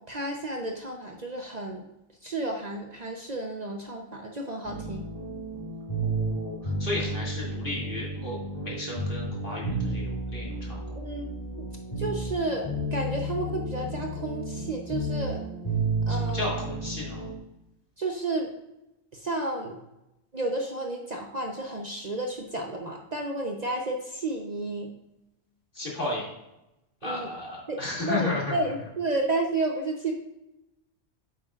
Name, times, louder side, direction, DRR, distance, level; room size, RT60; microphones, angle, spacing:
voice 1, 0.0-1.9 2.2-5.1 10.9-11.7 12.0-15.4 16.1-16.4 18.0-18.5 19.1-19.8 20.3-24.9 27.0-27.3 27.7-27.8 28.0-30.1, right 2 dB, 40° right, 2 dB, 0.8 m, -31 dB
sound 1, 4.6-17.4, right 1 dB, 30° left, 2.6 m, -32 dB
voice 2, 6.0-11.0 16.1-17.3 25.7-26.2 27.0-28.5, left 2 dB, 50° left, -4 dB, 2.6 m, -34 dB
9.2 x 7.6 x 2.4 m, 0.91 s
omnidirectional pair, 1.2 m